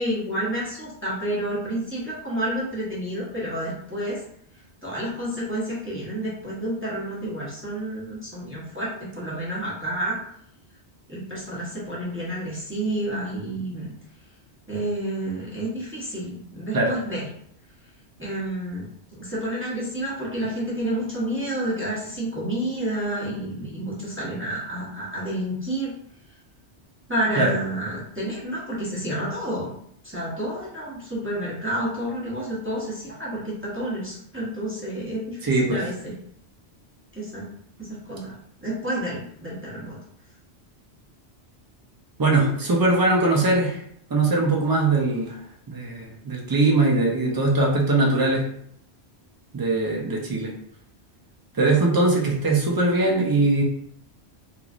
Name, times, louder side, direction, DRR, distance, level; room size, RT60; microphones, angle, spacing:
voice 1, 0.0-4.2 4.8-8.9 9.1-10.2 11.1-13.9 14.7-17.3 18.2-25.9 27.1-29.7 30.0-36.1 37.1-37.5 37.8-38.4 38.6-40.0, right 1 dB, 15° right, -7 dB, 0.7 m, -29 dB
voice 2, 35.4-35.8 42.2-43.8 44.1-45.4 45.7-48.4 49.5-50.5 51.5-53.6, right 2 dB, 35° right, -1 dB, 0.4 m, -21 dB
3.0 x 2.5 x 2.4 m, 0.68 s
omnidirectional pair, 1.1 m